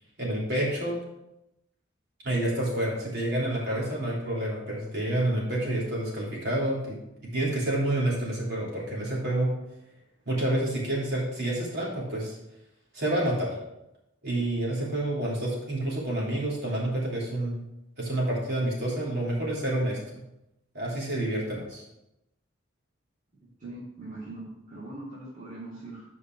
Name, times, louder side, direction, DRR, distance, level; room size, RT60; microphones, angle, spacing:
voice 1, 0.2-1.0 2.2-7.0 7.2-9.5 10.2-12.3 12.9-13.6 14.2-17.5 18.0-20.2 20.7-21.8, right 1 dB, 60° right, -6 dB, 3.2 m, -28 dB
voice 2, 23.6-26.0, right 2 dB, 40° right, -8 dB, 2.6 m, -41 dB
8.5 x 5.4 x 4.6 m, 0.89 s
head